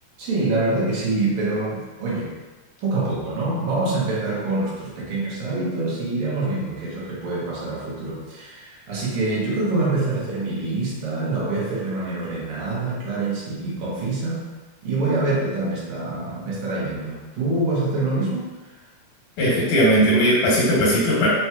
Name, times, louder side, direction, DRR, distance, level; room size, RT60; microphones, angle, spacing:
voice 1, 0.2-2.3 2.8-14.4 14.8-18.5, right 2 dB, 80° right, -6 dB, 2.5 m, -25 dB
voice 2, 19.4-21.3, equal, 80° left, -5 dB, 2.6 m, -18 dB
6.1 x 2.9 x 2.3 m, 1.2 s
omnidirectional pair, 3.4 m